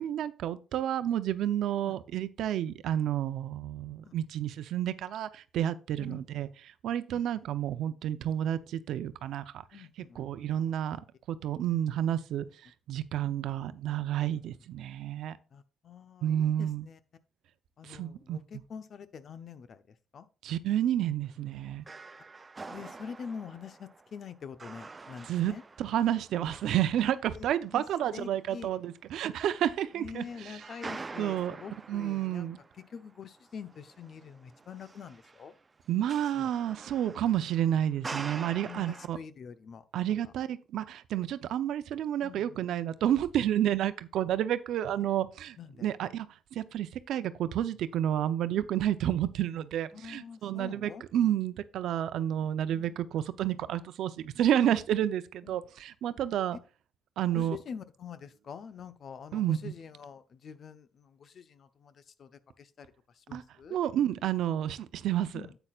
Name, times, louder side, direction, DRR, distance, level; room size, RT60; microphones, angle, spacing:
voice 1, 0.0-6.5 6.8-9.6 10.2-11.0 11.3-15.4 16.2-16.9 17.8-18.4 20.4-21.9 25.3-30.5 31.2-31.6 31.9-32.6 35.9-39.2 39.9-56.6 57.2-57.6 59.3-59.7 63.3-63.4 63.7-65.4, right 11 dB, 80° right, 0.7 m, -30 dB
voice 2, 7.1-7.5 9.7-10.3 10.6-10.7 13.2-13.6 14.3-14.6 15.5-17.0 17.8-20.3 22.7-25.6 26.4-26.6 27.3-27.5 27.7-27.8 28.1-28.7 29.9-35.5 36.3-36.5 38.6-39.8 40.2-40.3 42.2-42.6 45.0-45.1 45.6-45.9 49.9-51.0 52.1-53.0 55.4-55.6 56.0-56.1 56.5-56.6 57.3-63.8 65.3-65.6, left 6 dB, 55° left, 0.8 m, -46 dB
sound 1, 21.9-28.5 28.9-29.0 29.4-35.6 35.9-39.1, right 3 dB, 30° right, 0.5 m, -46 dB
9.8 x 8.0 x 2.4 m
cardioid pair, 90°, 0 cm